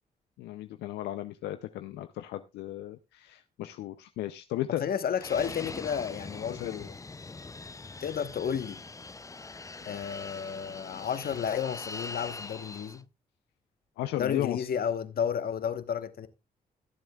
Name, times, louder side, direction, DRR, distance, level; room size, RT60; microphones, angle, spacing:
voice 1, 0.4-4.8 6.5-6.8 10.1-10.6 14.0-14.7, left 14 dB, 85° left, 0.5 m, -35 dB
voice 2, 4.8-7.0 8.0-8.8 9.8-13.1 14.2-16.3, left 8 dB, 60° left, 1.2 m, -32 dB
Fixed-wing aircraft airplane, 5.2-13.0, left 3 dB, 20° left, 0.5 m, -42 dB
21.0 x 7.8 x 2.3 m
supercardioid pair, 50°, 17 cm